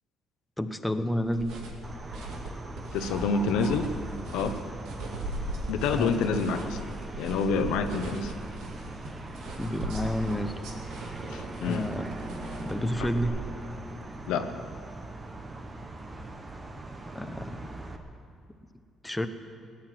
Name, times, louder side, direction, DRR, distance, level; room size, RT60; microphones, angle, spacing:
voice 1, 0.6-1.6 5.9-6.3 9.6-10.5 11.7-12.1 12.6-13.3 17.1-17.6 19.0-19.3, left 1 dB, 5° left, 7 dB, 0.9 m, -30 dB
sound 1, 1.2-13.2, right 1 dB, 85° right, 2.3 m, -39 dB
sound 2, 1.8-18.0, right 2 dB, 25° right, 1.3 m, -41 dB
voice 2, 2.9-3.9 4.3-4.6 5.7-6.8 7.2-8.3 11.3-11.9 14.3-14.6, left 5 dB, 90° left, 8 dB, 0.9 m, -27 dB
17.5 x 9.6 x 7.8 m, 2.3 s
cardioid pair, 105°, 0 cm